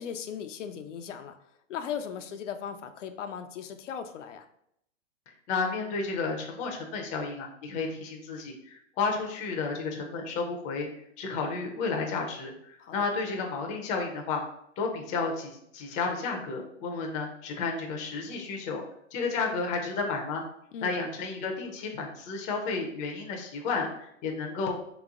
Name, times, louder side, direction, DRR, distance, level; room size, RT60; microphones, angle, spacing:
voice 1, 0.0-1.4 1.7-4.5 12.8-13.0 20.7-21.0, left 8 dB, 75° left, 7 dB, 0.5 m, -37 dB
voice 2, 5.5-10.9 11.2-14.4 14.8-18.8 19.1-20.4 20.8-24.7, left 4 dB, 20° left, 2 dB, 0.5 m, -32 dB
3.3 x 3.0 x 3.6 m, 0.73 s
hypercardioid pair, 130°, 37 cm